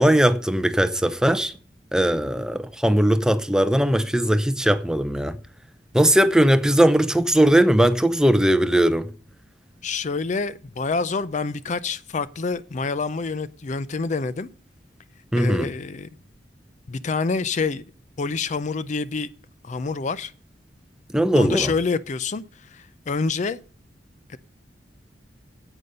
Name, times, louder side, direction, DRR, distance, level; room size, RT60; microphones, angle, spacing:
voice 1, 0.0-1.5 1.9-5.4 5.9-9.1 15.3-15.7 21.1-21.7, right 1 dB, 5° right, 0.6 m, -19 dB
voice 2, 9.8-14.5 15.3-16.1 16.9-17.8 18.2-19.3 19.6-20.3 21.3-23.6 24.3-24.4, left 4 dB, 45° left, 0.5 m, -27 dB
9.4 x 8.1 x 6.6 m
head